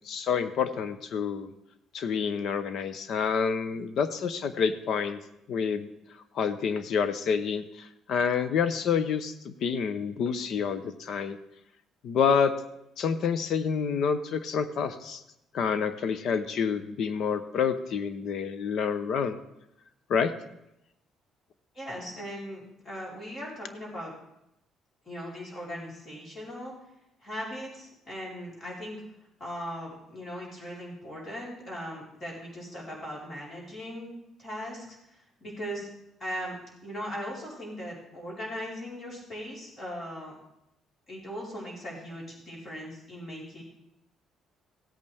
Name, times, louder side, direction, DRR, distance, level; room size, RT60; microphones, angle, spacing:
voice 1, 0.1-1.5 1.9-5.2 5.5-5.9 6.3-11.4 12.0-12.5 13.0-15.2 15.5-19.4 20.1-20.3, left 6 dB, 60° left, 12 dB, 0.8 m, -28 dB
voice 2, 21.7-24.1 25.0-26.7 27.2-29.0 29.4-34.1 34.4-35.9 36.2-40.4 41.1-43.6, equal, 35° left, -5 dB, 4.4 m, -39 dB
16.5 x 8.4 x 3.5 m, 0.84 s
cardioid pair, 115°, 0 cm